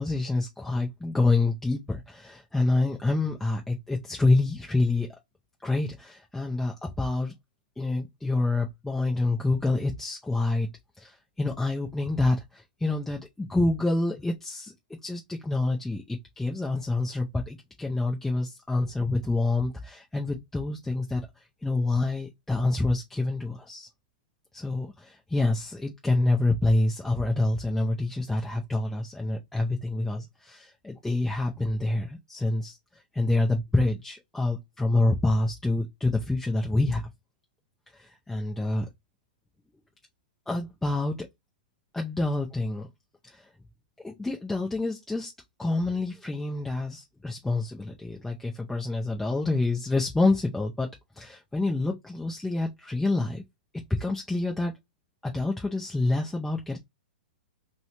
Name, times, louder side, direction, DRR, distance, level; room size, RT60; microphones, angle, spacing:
voice 1, 0.0-5.1 5.6-7.3 7.8-10.7 11.0-14.7 15.0-21.2 21.6-23.9 24.5-32.8 33.1-37.1 37.9-38.9 40.5-41.3 41.9-42.9 43.3-43.4 44.0-45.3 45.6-50.9 51.2-53.4 54.0-54.7 55.2-56.8, left 2 dB, 5° left, 0.5 m, -27 dB
2.9 x 2.6 x 3.1 m
hypercardioid pair, 130°, 5 cm